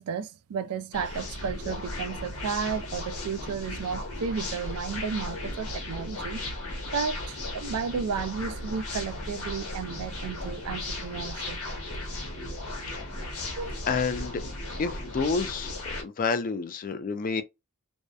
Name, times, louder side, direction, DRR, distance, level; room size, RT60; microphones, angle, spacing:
voice 1, 0.0-6.4 6.9-11.6 13.6-13.8, right 6 dB, 75° right, 0.3 m, -33 dB
sound 1, 0.9-16.0, left 1 dB, 75° left, 1.0 m, -36 dB
voice 2, 13.9-14.4 14.8-17.4, left 4 dB, 40° left, 0.4 m, -29 dB
2.7 x 2.0 x 2.3 m
head